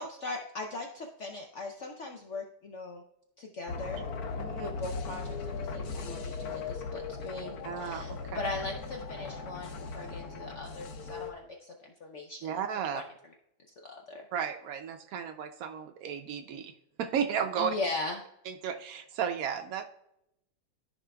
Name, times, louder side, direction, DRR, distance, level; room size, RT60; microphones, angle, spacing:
voice 1, 0.0-3.0 3.4-4.0 4.5-12.5 12.9-13.0 13.8-14.2 17.6-18.2, left 3 dB, 80° left, 2 dB, 0.6 m, -39 dB
sound 1, 3.7-11.3, left 4 dB, 60° left, 1.1 m, -38 dB
voice 2, 4.4-4.7 7.6-8.4 12.4-13.0 14.3-16.7 17.0-17.7 18.4-19.9, right 7 dB, 85° right, 5 dB, 0.7 m, -34 dB
13.5 x 4.9 x 2.3 m, 0.80 s
omnidirectional pair, 2.1 m